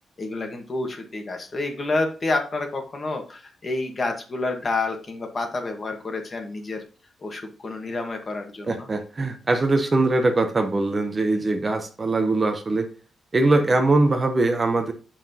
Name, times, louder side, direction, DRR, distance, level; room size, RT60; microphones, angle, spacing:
voice 1, 0.2-6.8 7.2-8.9, left 2 dB, 30° left, 4 dB, 1.3 m, -29 dB
voice 2, 8.7-12.9 13.3-14.9, right 2 dB, 25° right, 6 dB, 0.7 m, -21 dB
7.1 x 5.7 x 2.8 m, 0.37 s
wide cardioid pair, 165°, 0 cm